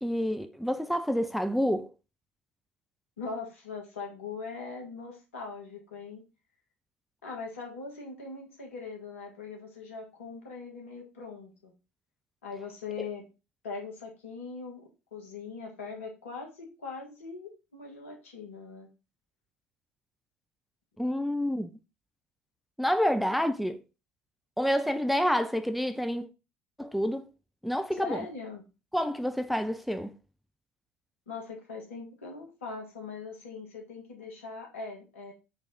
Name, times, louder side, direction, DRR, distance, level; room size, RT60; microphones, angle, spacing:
voice 1, 0.0-1.9 13.0-13.1 21.0-21.7 22.8-23.8 24.6-26.3 26.8-27.3 27.6-28.3 28.9-30.1, equal, ahead, 0.4 m, -28 dB
voice 2, 3.2-6.2 7.2-11.7 12.4-13.3 13.6-14.8 15.1-18.9 28.0-28.6 31.3-35.3, left 4 dB, 80° left, 1.3 m, -41 dB
3.3 x 3.3 x 3.8 m
figure-of-eight pair, 60°, 7 cm